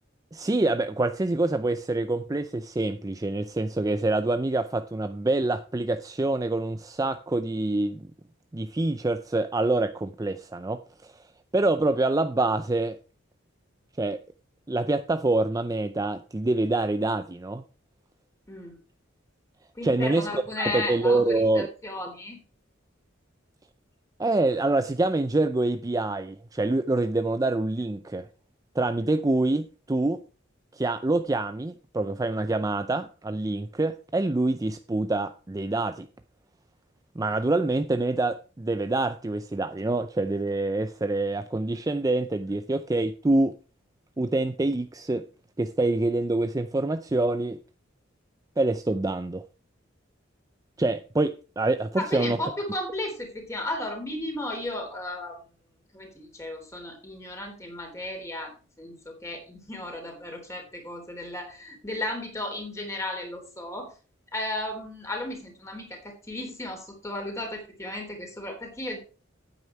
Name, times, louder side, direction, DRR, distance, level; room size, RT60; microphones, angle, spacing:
voice 1, 0.3-8.1 8.5-11.1 11.5-13.0 14.0-14.2 14.7-17.6 19.8-21.7 24.2-28.3 28.8-30.2 30.7-36.1 37.2-43.5 44.2-45.3 45.6-47.6 48.6-49.4 50.8-52.4, right 2 dB, 20° right, 0.4 m, -26 dB
voice 2, 18.5-18.8 19.8-22.4 42.5-42.6 52.0-55.4 55.9-63.9 64.3-69.0, left 1 dB, 15° left, 3.6 m, -34 dB
9.3 x 8.8 x 4.6 m
head